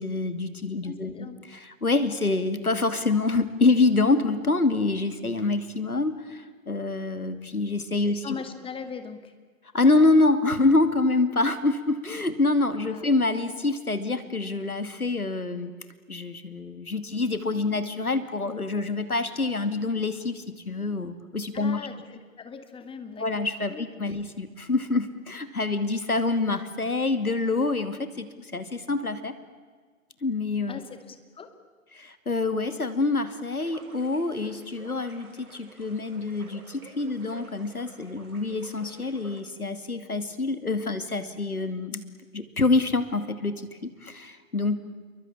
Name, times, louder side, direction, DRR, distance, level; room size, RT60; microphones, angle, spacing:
voice 1, 0.0-1.3 1.5-8.4 9.7-15.7 16.1-21.8 23.2-29.3 30.2-30.8 31.9-42.0 42.3-44.8, left 3 dB, 90° left, 11 dB, 2.6 m, -26 dB
voice 2, 0.8-1.4 8.2-9.3 12.7-13.1 21.5-23.9 30.7-31.6, left 6 dB, 10° left, 9 dB, 2.3 m, -40 dB
sound 1, 33.6-39.4, right 3 dB, 80° right, 4.6 m, -50 dB
28.5 x 23.0 x 8.6 m, 1.5 s
figure-of-eight pair, 115°, 43 cm